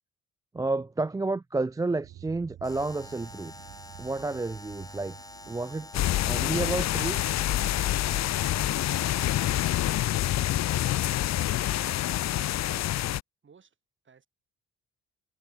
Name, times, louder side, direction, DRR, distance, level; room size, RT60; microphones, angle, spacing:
voice 1, 0.5-3.5 4.0-5.2 5.5-5.9 6.2-7.2, right 3 dB, 10° right, 0.4 m, -30 dB
sound 1, 2.0-11.2, right 12 dB, 75° right, 3.7 m, -53 dB
Alarm, 2.6-9.7, left 2 dB, 10° left, 6.2 m, -47 dB
sound 2, 5.9-13.2, left 14 dB, 60° left, 0.6 m, -27 dB
voice 2, 11.7-13.0 13.4-13.7 14.0-14.3, right 6 dB, 40° right, 4.3 m, -55 dB
cardioid pair, 90°, 30 cm